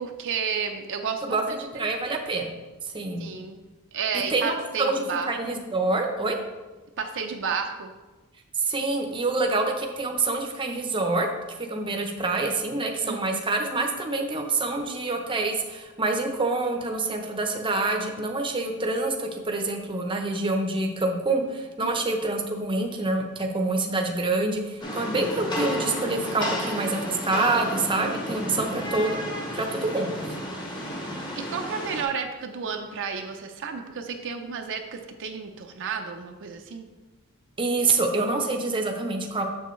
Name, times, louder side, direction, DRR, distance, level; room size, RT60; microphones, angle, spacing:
voice 1, 0.0-1.9 3.2-3.6 3.9-5.3 7.0-7.9 13.0-13.4 21.8-22.0 31.4-36.9, right 6 dB, 60° right, 4 dB, 0.5 m, -32 dB
voice 2, 1.2-2.5 2.9-3.3 4.3-6.4 8.6-11.3 11.7-29.2 29.5-30.3 37.6-39.4, right 3 dB, 25° right, 3 dB, 0.7 m, -26 dB
Rain, 24.8-32.0, equal, 20° left, 1.1 m, -32 dB
7.0 x 6.8 x 3.1 m, 1.2 s
head